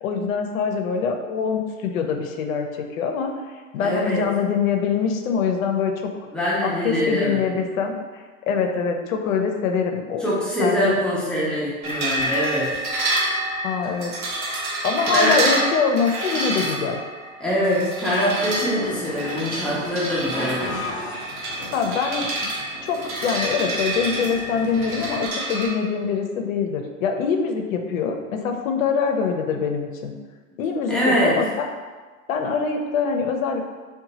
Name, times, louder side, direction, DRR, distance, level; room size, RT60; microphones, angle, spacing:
voice 1, 0.0-3.3 3.7-6.1 6.6-10.3 10.6-11.0 13.6-14.1 14.8-17.0 21.7-22.5 22.8-30.1 30.6-31.7 32.3-33.7, left 5 dB, 75° left, 4 dB, 0.5 m, -24 dB
voice 2, 3.8-4.2 6.3-7.4 10.2-12.7 15.1-15.4 17.4-20.9 30.9-31.4, equal, ahead, -9 dB, 0.3 m, -23 dB
sound 1, 11.8-25.7, right 1 dB, 45° right, 0.7 m, -28 dB
sound 2, 18.4-25.2, left 2 dB, 30° left, 0.7 m, -36 dB
2.8 x 2.3 x 2.7 m, 1.4 s
hypercardioid pair, 105°, 42 cm